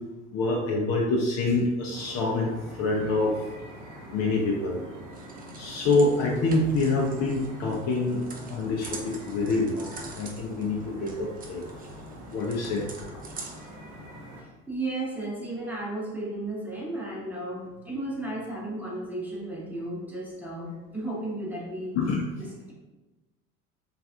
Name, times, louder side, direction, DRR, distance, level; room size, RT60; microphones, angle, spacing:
voice 1, 0.3-2.5 2.8-3.5 4.1-4.8 5.5-8.2 8.5-11.6 12.3-12.9 21.9-22.2, left 3 dB, 40° left, -1 dB, 0.5 m, -26 dB
sound 1, 1.9-14.4, equal, 50° right, 0.8 m, -45 dB
sound 2, 5.1-13.7, right 3 dB, 20° right, 0.4 m, -45 dB
voice 2, 14.4-22.0 22.4-22.7, right 2 dB, 5° right, -4 dB, 0.9 m, -34 dB
3.2 x 2.4 x 2.4 m, 1.1 s
hypercardioid pair, 65°, 42 cm